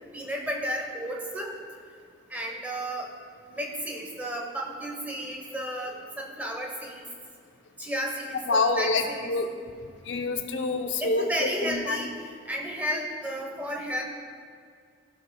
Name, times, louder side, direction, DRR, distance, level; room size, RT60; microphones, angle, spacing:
voice 1, 0.1-1.5 2.3-3.1 3.5-7.0 7.8-9.3 11.0-12.1 12.4-14.0, equal, 10° right, 0 dB, 1.0 m, -33 dB
voice 2, 8.5-9.5 9.8-12.0, left 3 dB, 80° left, 6 dB, 0.6 m, -27 dB
14.5 x 6.0 x 2.3 m, 2.2 s
head